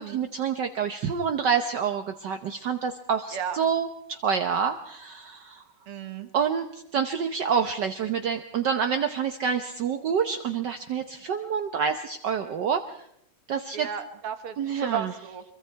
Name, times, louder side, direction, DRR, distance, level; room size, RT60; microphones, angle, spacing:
voice 1, 0.0-5.6 6.3-6.6 6.9-13.0 13.5-13.9 14.6-15.1, right 7 dB, 60° right, 6 dB, 1.4 m, -27 dB
voice 2, 5.9-6.3 13.7-15.4, right 7 dB, 90° right, 9 dB, 2.4 m, -34 dB
25.5 x 23.0 x 4.6 m, 0.74 s
omnidirectional pair, 2.4 m